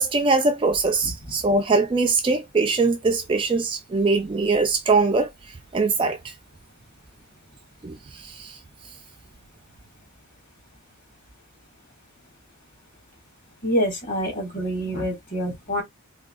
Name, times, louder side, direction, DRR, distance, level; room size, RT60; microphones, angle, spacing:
voice 1, 0.0-5.3 5.7-6.3 7.8-8.6, right 3 dB, 20° right, 0.3 m, -22 dB
voice 2, 13.6-15.8, equal, 35° left, 1.5 m, -26 dB
3.5 x 2.4 x 2.3 m
head